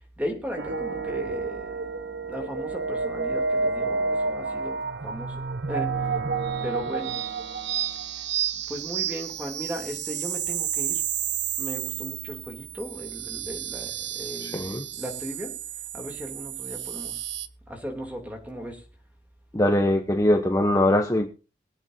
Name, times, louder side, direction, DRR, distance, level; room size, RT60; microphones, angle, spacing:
voice 1, 0.2-5.4 5.7-5.9 6.6-7.2 8.7-11.0 11.6-15.5 15.9-17.3 17.7-18.8, equal, 10° right, 2 dB, 3.1 m, -36 dB
sound 1, 0.6-17.5, right 6 dB, 80° right, 0.9 m, -30 dB
voice 2, 14.4-14.8 19.5-21.3, left 1 dB, 20° left, 3 dB, 1.0 m, -22 dB
23.0 x 8.9 x 2.8 m, 0.33 s
head